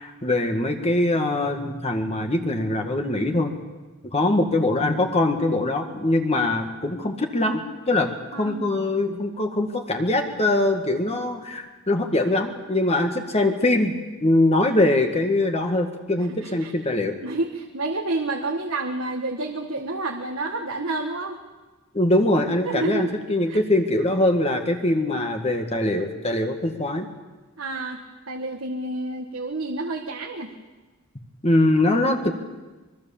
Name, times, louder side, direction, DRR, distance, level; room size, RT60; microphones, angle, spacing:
voice 1, 0.0-3.5 4.1-7.6 7.9-8.1 8.4-13.9 14.2-17.2 21.9-27.1 31.4-32.3, left 1 dB, 30° left, 4 dB, 1.8 m, -22 dB
voice 2, 8.3-8.7 16.4-16.7 17.2-21.4 22.6-23.1 23.5-23.6 27.6-28.0 28.3-30.5, right 2 dB, 80° right, 2 dB, 1.7 m, -29 dB
24.5 x 22.5 x 7.2 m, 1.2 s
head